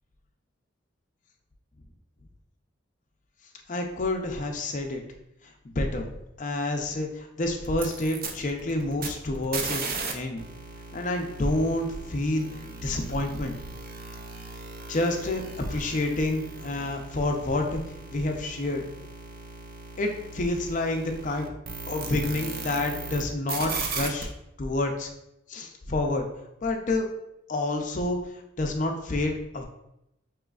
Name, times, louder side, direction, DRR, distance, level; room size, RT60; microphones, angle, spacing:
voice 1, 3.7-5.0 5.4-6.1 6.4-9.8 10.1-10.4 10.9-12.5 12.8-13.5 14.9-15.4 15.7-17.8 18.1-18.8 20.0-21.5 21.9-24.3 24.6-25.1 25.5-26.3 26.6-27.1 27.5-28.2 28.6-29.6, left 2 dB, 40° left, 3 dB, 0.5 m, -28 dB
sound 1, 7.7-10.1 10.4-23.2 23.5-24.2, right 4 dB, 50° right, 0.5 m, -37 dB
4.9 x 3.0 x 2.3 m, 0.84 s
head